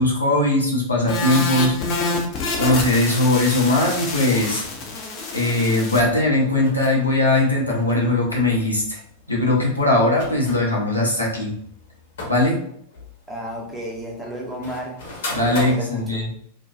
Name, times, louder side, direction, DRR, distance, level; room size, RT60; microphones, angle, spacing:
voice 1, 0.0-1.7 2.6-4.6 5.3-9.0 9.3-11.5 12.3-12.6 15.3-16.3, left 1 dB, 85° left, -4 dB, 0.6 m, -20 dB
sound 1, 1.1-6.0, left 3 dB, 35° left, 0.5 m, -27 dB
sound 2, 4.9-5.3 6.1-12.5 12.9-15.7, left 1 dB, 60° left, 0.9 m, -38 dB
voice 2, 13.3-15.0 15.4-16.2, equal, 5° right, -3 dB, 0.7 m, -32 dB
2.6 x 2.2 x 2.3 m, 0.68 s
figure-of-eight pair, 90°, 0 cm